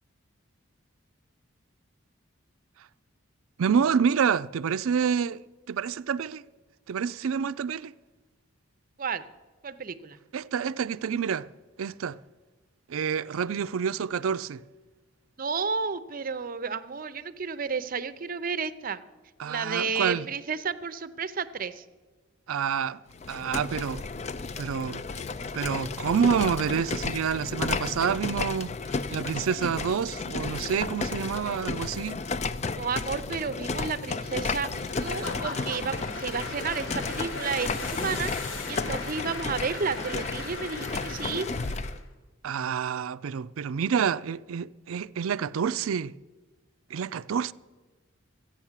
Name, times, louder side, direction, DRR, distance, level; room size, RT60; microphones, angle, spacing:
voice 1, 3.6-6.4 6.9-7.9 10.3-11.5 11.8-12.2 12.9-14.6 19.4-20.3 22.5-23.0 23.3-24.0 24.6-25.0 25.5-28.7 29.1-32.2 42.4-46.1 46.9-47.5, right 7 dB, 85° right, 0.4 m, -28 dB
voice 2, 9.6-10.2 15.4-19.0 19.5-21.8 32.7-34.7 35.0-41.5, right 5 dB, 45° right, 0.6 m, -32 dB
sound 1, 23.1-42.0, left 4 dB, 35° left, 0.4 m, -33 dB
sound 2, 32.0-32.9 33.9-35.0 37.1-39.1, left 8 dB, 65° left, 0.9 m, -45 dB
Applause / Crowd, 34.7-42.0, left 2 dB, 80° left, 2.5 m, -39 dB
14.5 x 8.7 x 7.3 m
head